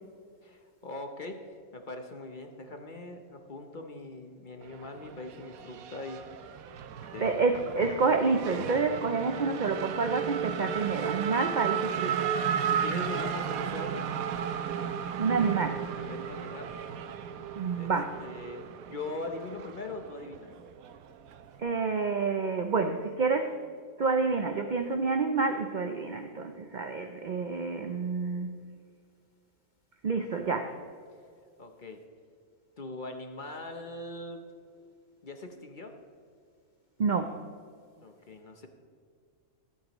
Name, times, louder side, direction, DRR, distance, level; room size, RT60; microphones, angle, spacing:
voice 1, 0.4-6.6 7.1-7.4 12.7-14.1 15.4-15.5 16.0-16.7 17.7-17.9 18.2-20.5 31.6-32.0 32.8-34.4 35.2-36.0 38.0-38.7, left 2 dB, 40° left, 5 dB, 0.8 m, -41 dB
Race car auto racing / Accelerating revving vroom, 4.6-21.6, right 8 dB, 85° right, 1.1 m, -34 dB
voice 2, 7.2-12.3 15.2-15.8 17.6-18.2 21.6-23.6 24.0-28.5 30.0-30.8 37.0-37.4, right 4 dB, 55° right, 6 dB, 0.5 m, -28 dB
24.0 x 8.5 x 3.0 m, 2.2 s
omnidirectional pair, 1.5 m